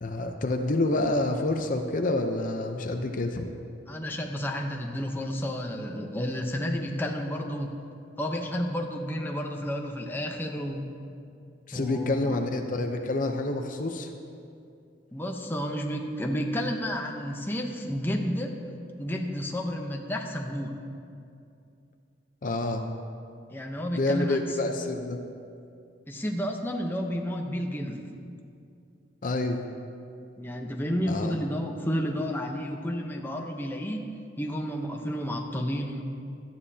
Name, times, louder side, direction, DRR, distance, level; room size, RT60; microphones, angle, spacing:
voice 1, 0.0-3.5 11.7-14.1 22.4-22.8 23.9-25.3 29.2-29.6 31.1-31.4, left 2 dB, 45° left, 4 dB, 0.7 m, -28 dB
voice 2, 3.9-7.7 8.2-10.9 11.7-12.4 15.1-18.5 19.0-20.7 23.5-24.6 26.1-28.1 30.4-34.0 34.4-36.0, equal, 10° left, 1 dB, 0.8 m, -31 dB
17.5 x 12.0 x 2.8 m, 2.5 s
head